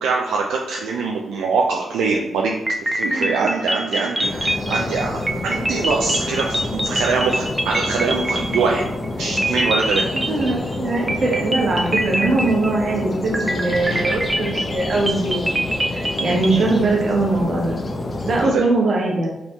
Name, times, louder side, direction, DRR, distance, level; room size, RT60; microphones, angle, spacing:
voice 1, 0.0-8.8 9.2-10.3 18.5-18.6, right 4 dB, 85° right, -1 dB, 0.4 m, -23 dB
sound 1, 2.7-9.1 9.4-10.8 11.1-12.9 13.3-16.7, right 1 dB, 20° right, 0.6 m, -24 dB
voice 2, 4.1-4.4 10.3-15.6 15.9-17.8 18.3-19.3, right 2 dB, 65° right, -1 dB, 1.1 m, -21 dB
sound 2, 4.2-18.5, left 2 dB, 45° left, 0.7 m, -28 dB
4.0 x 3.4 x 2.9 m, 0.98 s
supercardioid pair, 45°, 0 cm